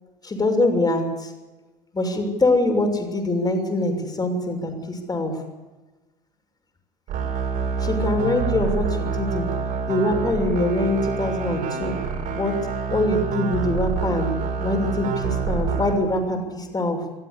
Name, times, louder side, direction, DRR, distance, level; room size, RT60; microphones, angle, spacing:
voice 1, 0.2-1.3 1.9-5.3 7.8-9.5 9.9-11.9 12.3-12.5 12.9-14.3 14.6-17.0, left 2 dB, 20° left, 5 dB, 6.6 m, -23 dB
sound 1, 7.1-15.9, right 5 dB, 50° right, 6.4 m, -27 dB
26.0 x 15.0 x 8.4 m, 1.2 s
figure-of-eight pair, 70°, 19 cm